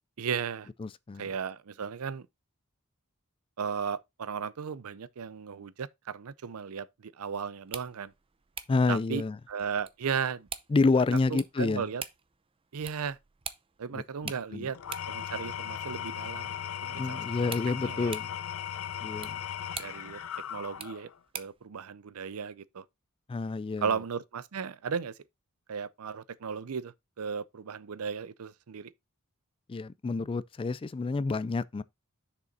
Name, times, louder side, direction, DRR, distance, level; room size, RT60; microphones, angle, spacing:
voice 1, 0.2-0.7 1.2-2.3 3.6-8.1 8.9-9.2 9.5-10.5 11.3-12.0 12.7-13.2 13.8-14.8 15.1-17.5 17.8-18.2 19.8-20.2 20.5-22.8 23.8-25.2 25.7-28.9, right 6 dB, 85° right, 0.5 m, -35 dB
voice 2, 0.8-1.3 8.7-9.4 10.7-11.8 13.9-14.7 16.9-18.3 19.0-19.4 23.3-23.9 29.7-31.8, left 3 dB, 25° left, 0.3 m, -29 dB
sound 1, 7.5-21.7, right 7 dB, 25° right, 0.6 m, -47 dB
Engine / Tools, 14.7-21.2, left 9 dB, 70° left, 0.5 m, -37 dB
6.8 x 5.2 x 4.0 m
head